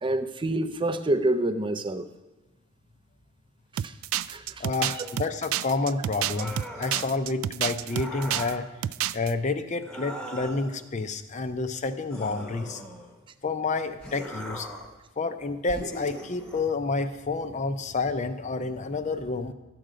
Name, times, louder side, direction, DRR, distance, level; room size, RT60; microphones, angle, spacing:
voice 1, 0.0-2.1 3.8-3.9 4.3-4.6 5.0-5.1, right 1 dB, 25° right, 11 dB, 0.5 m, -27 dB
sound 1, 3.8-8.5 8.8-9.3, right 11 dB, 80° right, 0.3 m, -29 dB
voice 2, 4.6-8.7 9.1-12.8 13.4-14.7 15.2-19.5, left 3 dB, 35° left, 10 dB, 0.6 m, -29 dB
sound 2, 6.2-7.2 7.9-8.7 9.8-10.8 12.1-13.2 14.0-15.0 15.7-16.7, equal, 5° left, 0.9 m, -40 dB
12.0 x 7.8 x 5.0 m, 1.1 s
head